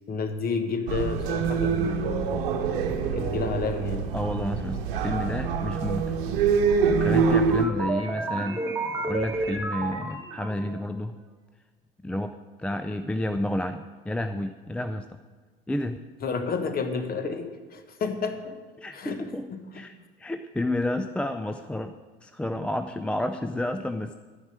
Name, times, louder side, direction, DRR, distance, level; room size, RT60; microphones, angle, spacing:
voice 1, 0.1-2.5 3.1-4.1 16.2-18.5 18.9-19.2 19.5-19.9, left 4 dB, 30° left, 8 dB, 1.3 m, -30 dB
sound 1, 0.9-7.7, right 6 dB, 60° right, 1.0 m, -25 dB
voice 2, 4.1-6.1 6.9-8.7 9.0-11.2 12.0-12.3 12.6-15.2 15.7-16.0 18.8-19.5 19.7-22.0 22.2-24.1, left 1 dB, 5° left, 8 dB, 0.3 m, -30 dB
sound 2, 6.6-10.8, right 3 dB, 10° right, 1.7 m, -32 dB
11.5 x 9.5 x 5.0 m, 1.4 s
figure-of-eight pair, 70°, 29 cm